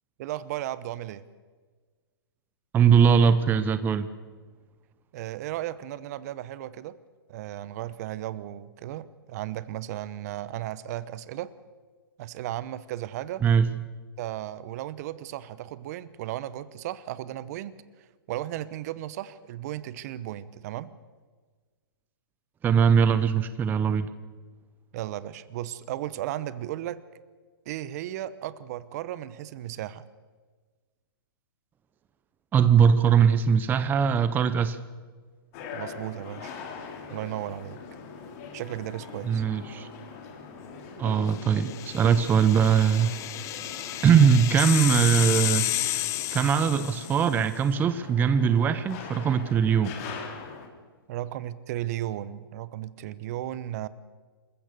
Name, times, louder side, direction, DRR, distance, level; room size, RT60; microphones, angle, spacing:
voice 1, 0.2-1.2 5.1-7.0 7.3-11.5 12.2-13.4 14.2-17.8 18.3-20.9 24.9-27.0 27.7-30.1 35.7-36.5 37.1-37.8 38.5-39.4 51.1-53.9, right 13 dB, 40° right, 17 dB, 0.9 m, -35 dB
voice 2, 2.7-4.1 13.4-13.7 22.6-24.1 32.5-34.8 39.2-39.9 41.0-43.1 44.0-45.7 46.3-49.9, right 7 dB, 15° right, 12 dB, 0.8 m, -21 dB
sound 1, 35.5-50.7, left 5 dB, 40° left, 3.4 m, -42 dB
sound 2, 41.4-47.4, left 14 dB, 25° left, 0.9 m, -31 dB
26.5 x 15.0 x 6.8 m, 1.4 s
hypercardioid pair, 145°, 13 cm